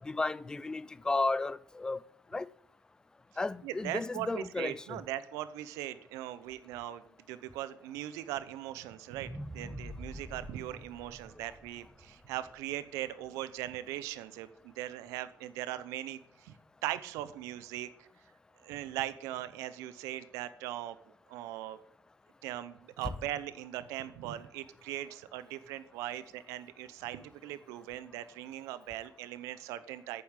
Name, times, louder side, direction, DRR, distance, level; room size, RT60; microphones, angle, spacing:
voice 1, 0.0-2.0 2.3-2.5 3.4-5.0, left 3 dB, 15° left, 0.4 m, -33 dB
voice 2, 3.6-7.0 7.3-16.5 16.8-18.1 18.6-21.0 21.3-21.8 22.4-30.2, right 13 dB, 90° right, 0.8 m, -40 dB
sound 1, 9.1-13.4 13.9-14.0, equal, ahead, 1.2 m, -46 dB
9.8 x 7.1 x 8.2 m
cardioid pair, 115°, 5 cm